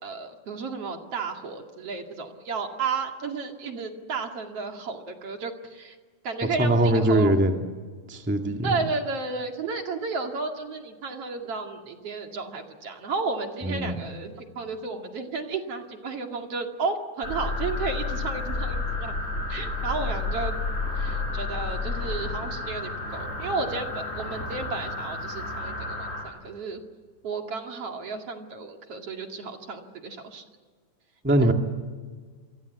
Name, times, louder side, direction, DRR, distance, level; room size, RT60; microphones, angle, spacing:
voice 1, 0.0-6.0 6.2-7.4 8.6-19.2 19.5-20.6 21.0-26.8 27.2-30.4 31.4-31.5, right 4 dB, 55° right, 3 dB, 3.2 m, -33 dB
voice 2, 6.6-7.6 8.1-8.8 13.6-14.0 31.2-31.5, right 1 dB, 5° right, 3 dB, 1.6 m, -22 dB
sound 1, 17.2-26.2, left 3 dB, 20° left, 7.4 m, -31 dB
29.5 x 24.0 x 8.4 m, 1.5 s
omnidirectional pair, 3.4 m